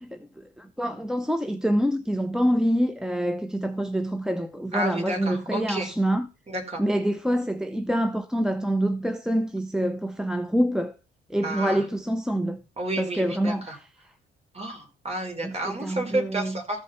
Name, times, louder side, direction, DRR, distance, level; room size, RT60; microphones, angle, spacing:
voice 1, 0.0-6.3 6.8-10.9 11.3-12.6 13.0-13.9 15.4-16.6, equal, 5° right, 0.9 m, -26 dB
voice 2, 4.7-5.9 6.5-6.8 11.4-11.8 12.8-13.7 14.5-16.8, right 1 dB, 30° right, 5.0 m, -31 dB
14.5 x 5.3 x 5.7 m
cardioid pair, 90°, 20 cm